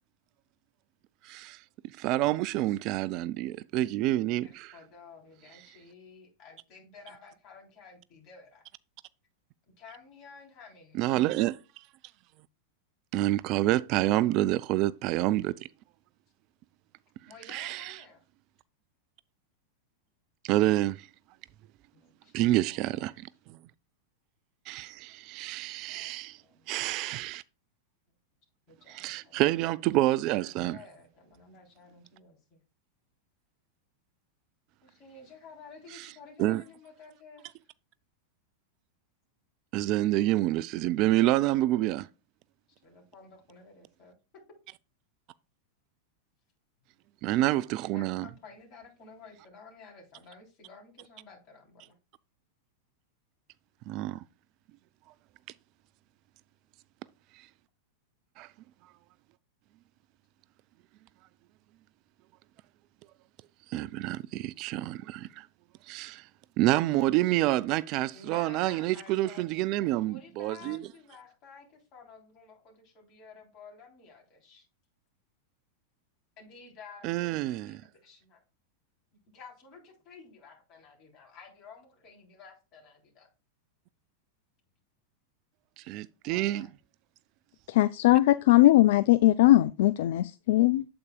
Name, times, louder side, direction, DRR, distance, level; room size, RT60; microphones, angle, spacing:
voice 1, 1.2-1.6 2.0-4.7 10.9-11.6 13.1-15.5 17.5-18.0 20.4-21.1 22.3-23.6 24.7-26.4 26.7-27.4 28.9-30.8 36.4-36.6 39.7-42.1 47.2-48.3 53.9-54.2 58.4-58.5 63.7-65.5 65.9-66.2 66.6-70.8 77.0-77.7 85.8-86.7, right 16 dB, 40° right, 0.3 m, -28 dB
voice 2, 4.4-8.7 9.8-11.3 17.3-18.2 21.9-23.0 25.9-26.1 26.4-26.7 28.7-29.4 30.6-32.6 34.8-37.6 42.8-44.2 47.9-52.0 68.1-74.7 76.4-78.4 79.3-83.3 86.2-86.7, left 4 dB, 40° left, 3.5 m, -52 dB
voice 3, 87.7-90.9, left 16 dB, 55° left, 0.3 m, -20 dB
8.6 x 7.9 x 2.3 m
figure-of-eight pair, 90°, 0 cm